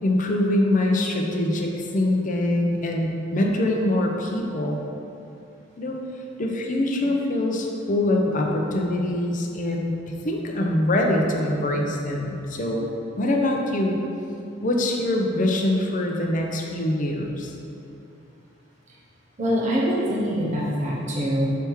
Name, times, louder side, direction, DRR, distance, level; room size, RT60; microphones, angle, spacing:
voice 1, 0.0-4.8 5.8-6.0 6.4-14.0 14.6-17.5, left 1 dB, 40° left, 1 dB, 0.6 m, -24 dB
voice 2, 19.4-21.6, equal, 40° right, -5 dB, 0.8 m, -24 dB
6.0 x 3.4 x 4.6 m, 2.7 s
head